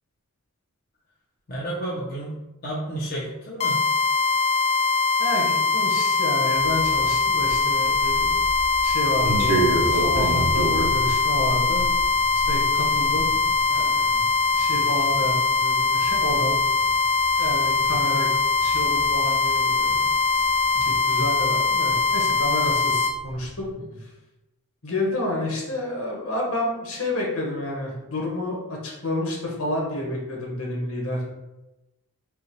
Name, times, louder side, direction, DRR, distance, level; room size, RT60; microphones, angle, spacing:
voice 1, 1.5-2.3 2.6-3.8 14.0-14.3 17.8-18.0 20.7-21.0, right 1 dB, 45° left, -6 dB, 0.8 m, -32 dB
sound 1, 3.6-23.1, left 4 dB, 30° left, 0.3 m, -22 dB
voice 2, 5.2-8.3 8.8-11.8 12.5-13.3 13.7-14.1 14.5-16.6 17.4-18.3 18.6-20.1 20.3-20.4 20.8-23.5 24.8-31.3, left 1 dB, 75° left, -2 dB, 1.3 m, -29 dB
sound 2, 6.5-22.1 22.3-23.6, right 2 dB, 85° right, 1.0 m, -31 dB
5.4 x 2.4 x 3.1 m, 1.0 s
head